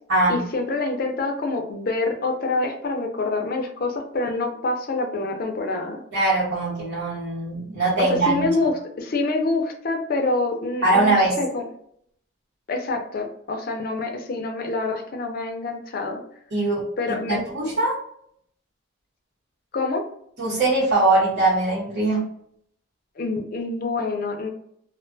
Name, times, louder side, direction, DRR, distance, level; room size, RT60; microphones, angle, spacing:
voice 1, 0.3-6.0 8.0-11.6 12.7-16.2 17.0-17.4 19.7-20.0 23.2-24.5, left 3 dB, 50° left, 3 dB, 0.5 m, -26 dB
voice 2, 6.1-8.5 10.8-11.3 16.5-16.8 17.3-17.9 20.4-22.2, right 2 dB, 75° right, -10 dB, 1.0 m, -21 dB
2.3 x 2.2 x 2.5 m, 0.68 s
head